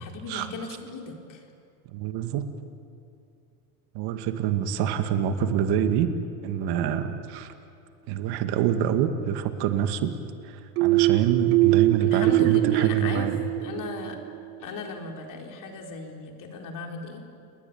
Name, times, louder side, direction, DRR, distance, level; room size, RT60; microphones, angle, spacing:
voice 1, 0.0-1.4 12.0-13.3 13.6-14.2 14.6-17.2, left 4 dB, 45° left, 3 dB, 4.4 m, -37 dB
voice 2, 1.9-2.5 3.9-7.5 8.1-10.2 10.4-13.4, right 9 dB, 55° right, 8 dB, 2.2 m, -26 dB
sound 1, 10.8-14.4, right 19 dB, 85° right, 0.6 m, -22 dB
30.0 x 21.0 x 8.7 m, 2.6 s
supercardioid pair, 110°, 45 cm